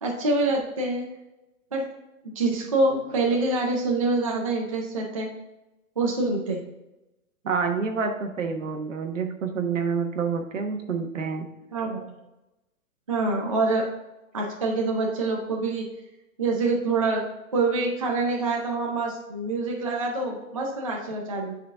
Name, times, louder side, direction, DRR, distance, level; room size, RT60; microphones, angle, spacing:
voice 1, 0.0-1.1 1.7-1.9 2.4-5.3 6.0-6.6 11.7-12.1 13.1-13.9 14.3-15.9 16.4-17.2 17.5-21.5, right 3 dB, 25° right, -1 dB, 0.5 m, -26 dB
voice 2, 7.4-11.5, right 5 dB, 60° right, 4 dB, 1.3 m, -28 dB
9.8 x 4.1 x 3.5 m, 0.97 s
hypercardioid pair, 170°, 42 cm